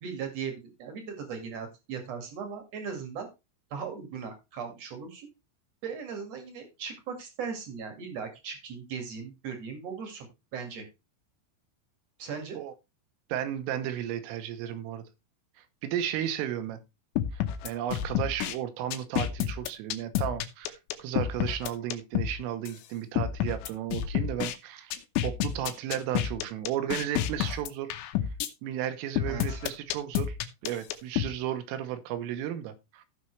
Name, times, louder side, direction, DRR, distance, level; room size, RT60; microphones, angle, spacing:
voice 1, 0.0-3.3 3.7-5.3 5.8-10.8 12.2-12.6 29.2-29.6, right 6 dB, 55° right, 1.9 m, -38 dB
voice 2, 13.3-15.1 15.8-16.8 17.3-24.9 25.2-27.9 28.6-30.4 30.6-33.0, right 11 dB, 80° right, 3.6 m, -34 dB
sound 1, 17.2-18.6 18.9-22.4 22.7-22.8 23.2-24.6 24.9-28.5 29.2-31.3, left 11 dB, 75° left, 3.1 m, -29 dB
15.5 x 5.5 x 3.2 m
omnidirectional pair, 5.8 m